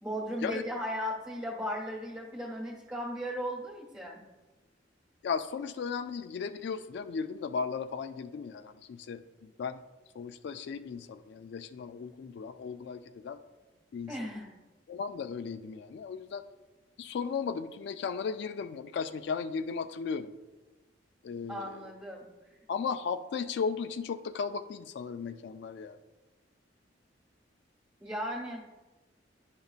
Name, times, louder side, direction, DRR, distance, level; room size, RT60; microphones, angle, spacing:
voice 1, 0.0-4.2 14.1-14.5 21.5-22.6 28.0-28.6, equal, 10° right, -6 dB, 1.1 m, -36 dB
voice 2, 5.2-9.8 10.2-13.4 13.9-14.1 14.9-16.4 17.0-20.3 21.2-21.8 22.7-26.0, left 5 dB, 60° left, 10 dB, 0.3 m, -36 dB
10.5 x 5.2 x 2.4 m, 1.2 s
head